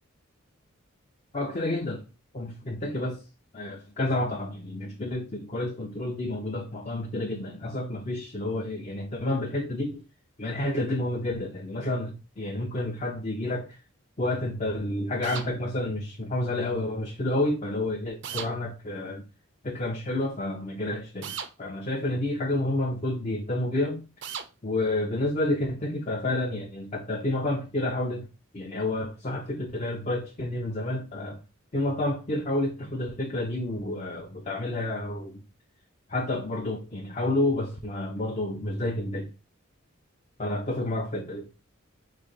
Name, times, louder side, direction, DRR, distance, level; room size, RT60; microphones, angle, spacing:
voice 1, 1.3-2.0 2.3-3.2 3.5-10.0 10.4-13.7 14.2-19.2 19.6-24.0 24.6-28.3 28.5-31.4 31.7-35.3 36.1-39.3 40.4-41.5, left 1 dB, 30° left, 0.6 m, -30 dB
sound 1, 15.2-15.5 18.2-18.5 21.2-21.5 24.2-24.5, right 7 dB, 55° right, 0.5 m, -35 dB
3.6 x 3.3 x 3.9 m
head